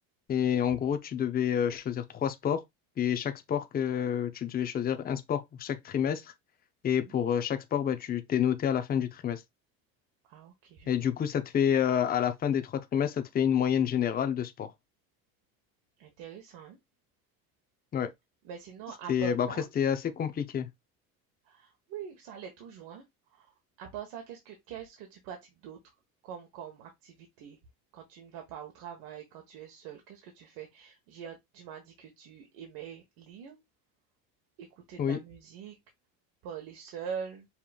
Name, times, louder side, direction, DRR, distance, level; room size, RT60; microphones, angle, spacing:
voice 1, 0.3-2.6 3.0-6.3 6.8-9.4 10.9-14.7 17.9-18.1 19.1-19.5 19.8-20.7 35.0-35.2, left 9 dB, 25° left, 0.6 m, -28 dB
voice 2, 10.3-11.1 16.0-16.8 18.4-19.7 21.4-25.8 26.2-27.6 27.9-33.6 34.6-35.8 36.4-37.5, right 7 dB, 75° right, 1.3 m, -44 dB
5.6 x 3.2 x 2.4 m
cardioid pair, 130°, 35 cm